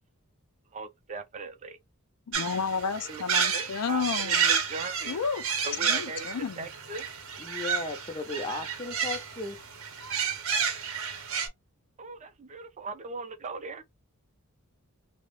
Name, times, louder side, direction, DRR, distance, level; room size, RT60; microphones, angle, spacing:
voice 1, 0.7-1.8 3.0-5.2 5.6-7.1 12.0-13.8, right 3 dB, 30° right, 0.4 m, -39 dB
voice 2, 2.3-4.5 5.1-5.4 5.9-6.7, left 5 dB, 80° left, 0.4 m, -31 dB
sound 1, 2.3-11.5, right 7 dB, 65° right, 0.7 m, -31 dB
voice 3, 7.4-9.6, left 3 dB, 20° left, 0.5 m, -36 dB
2.3 x 2.1 x 3.1 m
head